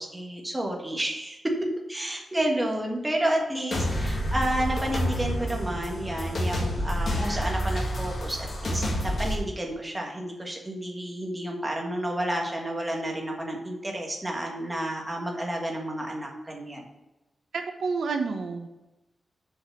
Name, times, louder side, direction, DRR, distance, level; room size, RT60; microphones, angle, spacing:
voice 1, 0.0-1.4 1.9-16.8, right 1 dB, 15° right, 0 dB, 1.5 m, -31 dB
sound 1, 3.7-9.3, equal, 45° left, 1.7 m, -28 dB
voice 2, 17.5-18.7, right 4 dB, 85° right, 5 dB, 0.9 m, -29 dB
7.2 x 5.1 x 7.0 m, 1.0 s
wide cardioid pair, 175°, 0 cm